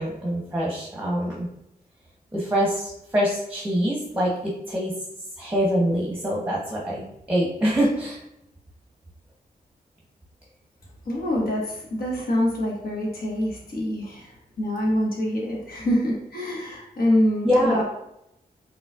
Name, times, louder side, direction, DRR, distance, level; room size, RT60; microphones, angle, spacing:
voice 1, 0.0-1.5 2.3-4.9 5.4-8.2 17.4-17.8, equal, 10° right, -4 dB, 0.9 m, -24 dB
voice 2, 11.0-17.8, left 1 dB, 70° left, -3 dB, 1.3 m, -25 dB
5.1 x 3.1 x 2.4 m, 0.81 s
wide cardioid pair, 90°, 16 cm